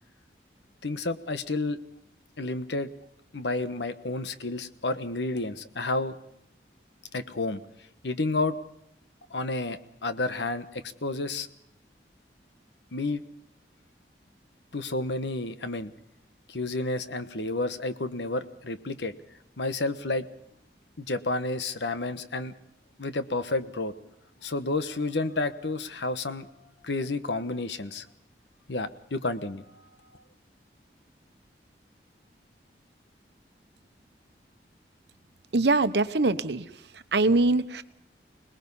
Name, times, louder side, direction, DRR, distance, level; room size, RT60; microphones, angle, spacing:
voice 1, 0.8-1.8 2.4-2.9 3.3-6.1 7.1-7.6 8.0-8.5 9.3-11.5 12.9-13.2 14.7-15.9 16.5-19.1 19.6-20.3 21.0-22.5 23.0-23.9 24.4-26.5 26.8-28.0 28.7-29.6, left 2 dB, 90° left, 11 dB, 1.2 m, -30 dB
voice 2, 35.5-37.8, right 3 dB, 80° right, 12 dB, 1.0 m, -24 dB
25.5 x 20.0 x 5.5 m, 0.78 s
head